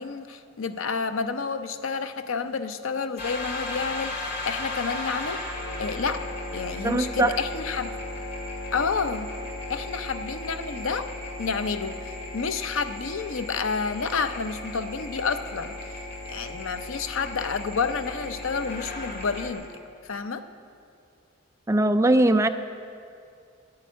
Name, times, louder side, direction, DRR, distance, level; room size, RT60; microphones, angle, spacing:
voice 1, 0.0-5.5 5.8-6.2 6.5-8.0 8.7-9.3 9.7-11.1 11.4-12.0 12.3-15.8 16.3-20.4, left 5 dB, 75° left, 10 dB, 0.7 m, -29 dB
sound 1, 3.2-19.5, left 2 dB, 50° left, 2.2 m, -36 dB
voice 2, 6.8-7.4 21.7-22.5, right 1 dB, 15° right, 9 dB, 0.4 m, -20 dB
10.5 x 9.6 x 9.2 m, 2.4 s
head